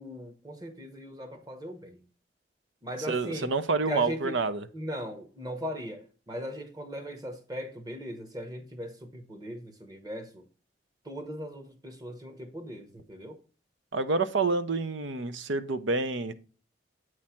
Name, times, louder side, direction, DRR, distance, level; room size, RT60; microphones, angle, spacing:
voice 1, 0.0-2.0 2.8-3.5 3.9-4.3 4.7-10.4 11.1-13.4, equal, 20° right, 1.0 m, -38 dB
voice 2, 3.1-4.7 13.9-16.3, right 3 dB, 80° right, 0.7 m, -28 dB
8.6 x 3.2 x 5.7 m
head